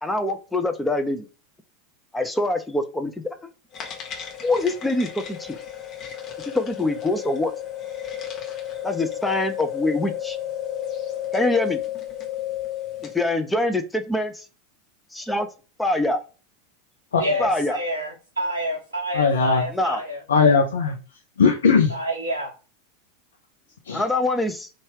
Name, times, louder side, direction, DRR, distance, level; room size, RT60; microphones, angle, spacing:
voice 1, 0.0-1.3 2.1-3.1 4.4-5.6 6.5-7.5 8.8-10.4 11.3-11.8 13.0-14.5 15.1-15.5 15.8-16.2 17.4-17.8 19.7-20.0 23.9-24.7, left 2 dB, 5° left, 0.4 m, -24 dB
sound 1, 3.7-13.3, left 11 dB, 40° left, 0.9 m, -32 dB
voice 2, 17.2-20.2 21.9-22.5, equal, 85° right, 0.5 m, -28 dB
voice 3, 19.1-19.6 20.3-21.0 21.4-21.9 23.9-24.0, left 5 dB, 75° left, 0.4 m, -19 dB
2.7 x 2.3 x 2.9 m
figure-of-eight pair, 85°, 0 cm